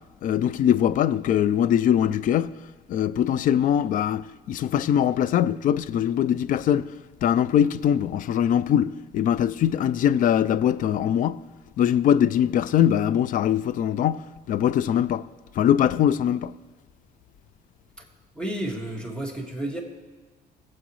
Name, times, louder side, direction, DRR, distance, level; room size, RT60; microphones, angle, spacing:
voice 1, 0.2-2.5 2.9-6.9 7.2-11.4 11.8-15.3 15.5-16.5, left 10 dB, 55° left, 0.4 m, -22 dB
voice 2, 18.4-19.8, right 1 dB, 5° left, 1.9 m, -31 dB
19.5 x 7.8 x 3.1 m
cardioid pair, 110°, 17 cm